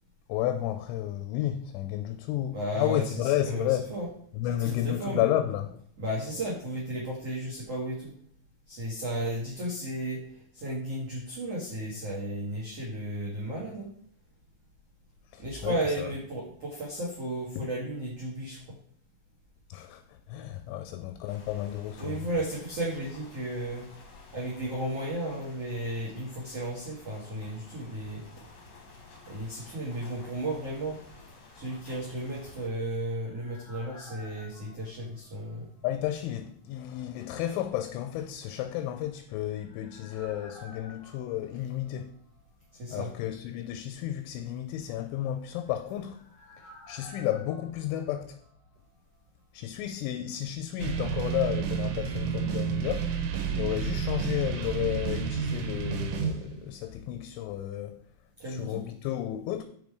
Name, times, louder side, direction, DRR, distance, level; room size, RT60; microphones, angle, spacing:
voice 1, 0.3-3.9 4.3-5.8 15.3-16.1 17.6-17.7 19.7-22.2 35.8-42.1 42.9-46.2 46.9-48.4 49.5-53.1 53.5-58.0 58.5-59.6, left 12 dB, 85° left, 2.8 m, -32 dB
voice 2, 2.5-4.1 4.4-5.3 6.0-8.1 8.7-13.9 15.4-18.8 22.0-23.8 24.3-28.2 29.3-31.0 31.5-35.7 42.7-43.1 58.4-58.8, right 1 dB, 90° right, 1.3 m, -34 dB
sound 1, 21.3-32.7, left 3 dB, 65° left, 2.0 m, -52 dB
sound 2, 32.5-36.2 36.5-36.6 39.0-42.7 42.9-43.0 45.3-49.2 49.4-49.5, left 1 dB, 50° left, 1.2 m, -54 dB
sound 3, 50.8-56.7, right 7 dB, 75° right, 2.7 m, -30 dB
7.3 x 5.1 x 4.7 m
omnidirectional pair, 5.7 m